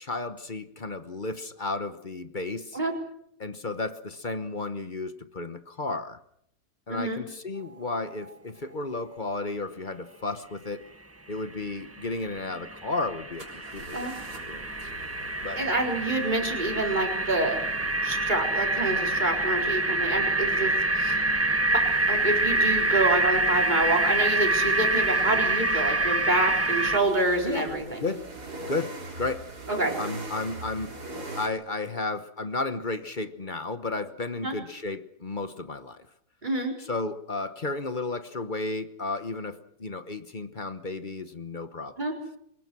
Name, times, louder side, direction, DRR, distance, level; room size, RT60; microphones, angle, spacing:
voice 1, 0.0-2.8 3.4-6.2 6.9-10.8 11.3-14.1 14.5-14.9 15.4-15.6 27.4-27.7 28.0-28.2 28.7-29.5 30.0-31.0 31.3-36.0 36.8-42.0, left 3 dB, 35° left, 11 dB, 1.1 m, -33 dB
voice 2, 6.9-7.2 13.9-14.1 15.5-17.6 18.0-21.2 22.1-28.1 29.7-30.0 34.4-34.6 36.4-36.7 42.0-42.1, right 2 dB, 25° right, 1 dB, 4.5 m, -27 dB
sound 1, 12.0-12.1 12.3-27.0, right 2 dB, 10° right, 1.0 m, -26 dB
sound 2, 12.2-12.3 13.4-31.5, right 2 dB, 80° right, 4.4 m, -43 dB
24.0 x 20.5 x 6.2 m, 0.71 s
omnidirectional pair, 1.7 m